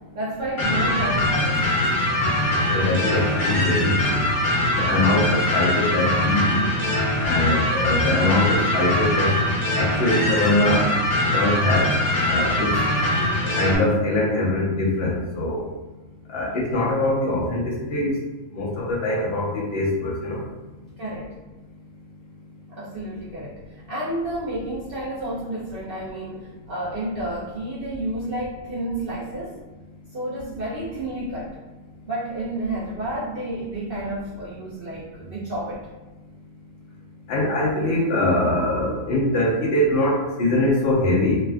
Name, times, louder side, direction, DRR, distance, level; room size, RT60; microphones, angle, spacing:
voice 1, 0.1-1.8 21.0-21.3 22.7-29.6 30.1-31.6 32.0-35.9, right 1 dB, 60° right, -7 dB, 0.6 m, -30 dB
sound 1, 0.6-13.8, left 1 dB, 70° left, 1.3 m, -22 dB
voice 2, 2.7-4.2 4.8-6.7 7.2-9.3 9.8-10.9 11.3-11.9 12.3-12.7 13.6-15.6 16.3-18.1 18.5-20.4 37.3-41.4, left 1 dB, 50° left, -4 dB, 0.8 m, -22 dB
3.3 x 2.3 x 2.3 m, 1.2 s
omnidirectional pair, 1.5 m